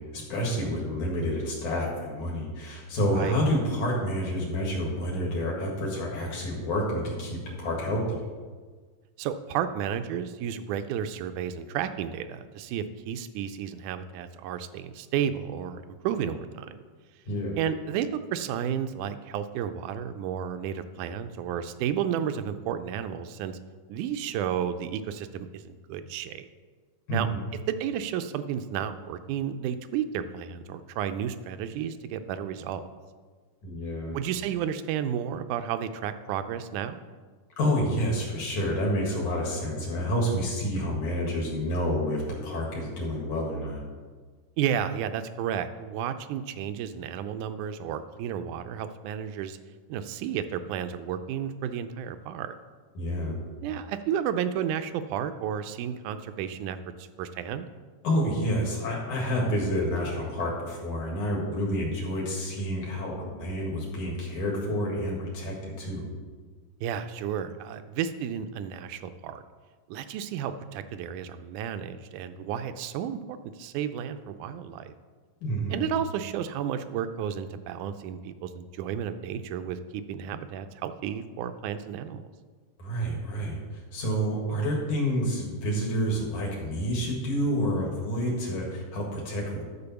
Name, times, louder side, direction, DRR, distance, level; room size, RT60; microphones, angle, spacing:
voice 1, 0.0-8.2 17.3-17.6 27.1-27.5 33.6-34.2 37.6-43.8 53.0-53.4 58.0-66.1 75.4-75.8 82.8-89.6, equal, 65° left, -2 dB, 3.2 m, -29 dB
voice 2, 9.2-16.8 17.6-23.6 23.9-26.5 27.1-27.3 27.7-32.9 34.1-37.1 44.6-49.6 49.9-52.5 53.6-57.7 66.8-69.4 69.9-74.9 75.7-82.3, right 9 dB, 80° right, 10 dB, 1.9 m, -32 dB
12.0 x 4.5 x 6.9 m, 1.5 s
omnidirectional pair, 3.8 m